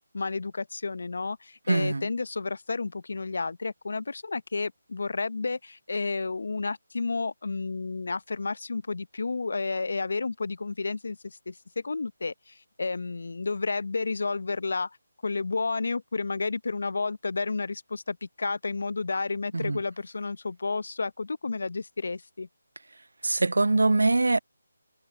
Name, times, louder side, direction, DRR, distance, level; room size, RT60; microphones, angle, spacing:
voice 1, 0.1-15.0 15.2-22.5, left 4 dB, 65° left, 0.7 m, -31 dB
voice 2, 1.7-2.1 19.5-19.8 23.2-24.4, right 2 dB, 75° right, 0.3 m, -23 dB
figure-of-eight pair, 155°, 0 cm